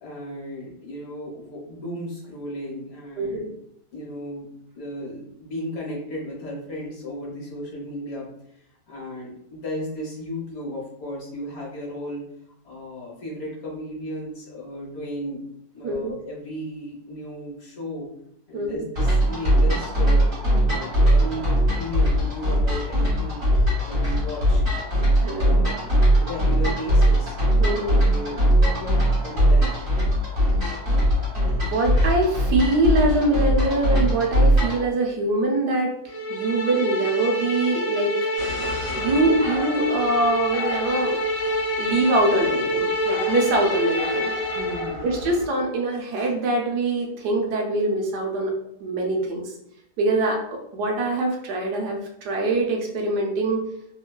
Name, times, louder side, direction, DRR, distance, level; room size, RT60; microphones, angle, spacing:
voice 1, 0.0-3.5 3.9-4.5 4.7-8.3 8.6-12.2 12.6-15.4 15.7-18.1 18.5-23.4 23.9-24.6 25.0-27.4 28.0-29.8 44.5-45.1, left 1 dB, 60° left, -4 dB, 1.1 m, -35 dB
voice 2, 3.2-3.5 15.8-16.2 18.5-18.9 25.2-25.5 27.6-28.0 31.6-35.9 36.3-38.3 39.0-41.2 41.8-44.3 45.0-48.5 48.8-49.5 50.0-50.4 50.7-53.6, right 2 dB, 80° right, 1 dB, 1.2 m, -23 dB
sound 1, 19.0-34.8, equal, 40° right, 1.5 m, -20 dB
sound 2, 36.1-44.9, left 1 dB, 80° left, 0.5 m, -27 dB
sound 3, 38.4-45.5, left 2 dB, 60° right, 1.5 m, -36 dB
3.1 x 2.2 x 2.2 m, 0.74 s
omnidirectional pair, 1.8 m